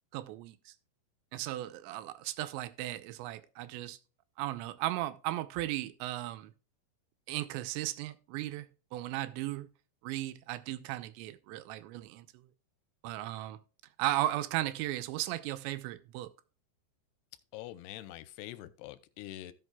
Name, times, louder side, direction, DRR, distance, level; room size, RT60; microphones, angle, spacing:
voice 1, 0.1-0.7 1.3-4.0 4.4-6.5 7.3-9.7 10.0-12.5 13.0-13.6 14.0-16.3, right 15 dB, 90° right, 3.0 m, -36 dB
voice 2, 17.5-19.5, left 14 dB, 80° left, 2.5 m, -45 dB
15.5 x 6.4 x 2.2 m
omnidirectional pair, 5.0 m